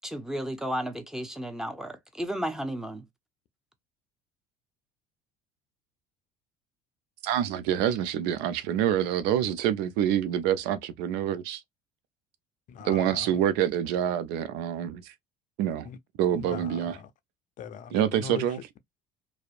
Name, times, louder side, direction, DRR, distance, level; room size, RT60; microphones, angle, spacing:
voice 1, 0.0-3.0, equal, 5° right, 0.7 m, -33 dB
voice 2, 7.2-11.6 12.8-15.1 15.6-15.9 16.2-16.9 17.9-18.6, right 10 dB, 75° right, 0.5 m, -26 dB
voice 3, 12.7-13.4 15.8-16.0 16.3-17.1 17.6-18.8, left 7 dB, 50° left, 0.4 m, -41 dB
2.6 x 2.0 x 2.4 m
supercardioid pair, 85°, 17 cm